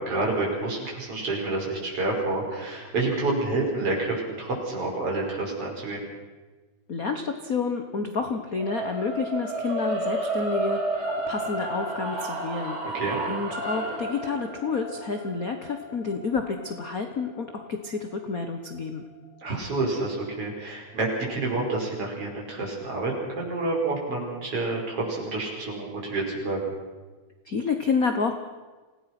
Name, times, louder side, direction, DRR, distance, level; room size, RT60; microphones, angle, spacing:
voice 1, 0.0-6.0 12.9-13.2 19.4-26.6, right 2 dB, 50° right, -2 dB, 6.3 m, -28 dB
voice 2, 6.9-12.9 13.3-19.0 27.4-28.3, left 4 dB, 60° left, 6 dB, 0.9 m, -29 dB
sound 1, 8.6-18.8, right 2 dB, 65° right, 7.6 m, -32 dB
27.0 x 18.0 x 6.0 m, 1.3 s
omnidirectional pair, 3.5 m